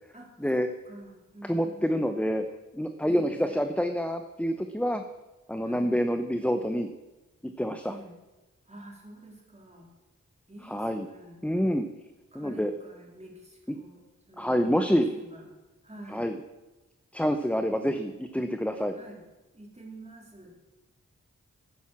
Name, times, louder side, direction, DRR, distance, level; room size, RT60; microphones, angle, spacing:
voice 1, 0.1-2.1 3.0-3.6 5.6-5.9 7.8-8.1 8.7-9.9 10.5-11.4 12.3-15.5 15.8-16.3 18.9-19.2 19.5-20.5, right 1 dB, 20° right, -1 dB, 3.8 m, -48 dB
voice 2, 1.4-2.4 2.7-5.0 5.5-6.9 7.4-7.9 10.7-11.1 11.4-11.9 12.3-12.7 13.7-13.8 14.4-15.1 16.1-16.4 17.1-19.0, equal, 5° left, 7 dB, 0.8 m, -27 dB
10.5 x 9.4 x 7.3 m, 1.1 s
wide cardioid pair, 55°, 32 cm